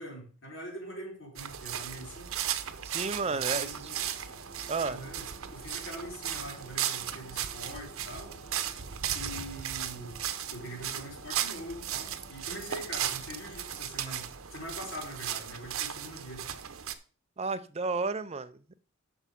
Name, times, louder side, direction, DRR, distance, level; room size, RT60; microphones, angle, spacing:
voice 1, 0.0-2.3 3.3-4.0 4.8-8.3 9.1-10.2 10.5-16.5, equal, 65° left, 4.6 m, -43 dB
sound 1, 1.4-16.9, right 10 dB, 80° right, 0.8 m, -36 dB
voice 2, 2.8-3.9 4.7-5.0 17.4-18.8, right 4 dB, 30° right, 0.5 m, -32 dB
sound 2, 3.6-13.9, right 1 dB, 45° left, 2.6 m, -55 dB
8.8 x 6.1 x 5.2 m
head